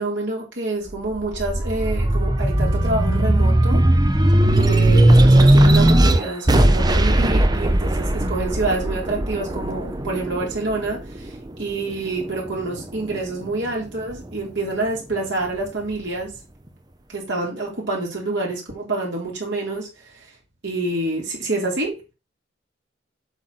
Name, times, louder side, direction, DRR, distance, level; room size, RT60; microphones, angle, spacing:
voice 1, 0.0-3.8 4.6-11.3 11.6-16.3 17.1-19.9 20.6-21.9, right 2 dB, 65° right, -2 dB, 3.7 m, -27 dB
sound 1, 0.9-11.7 12.2-13.3, right 1 dB, 20° right, 0.7 m, -17 dB
7.9 x 6.3 x 4.2 m, 0.30 s
head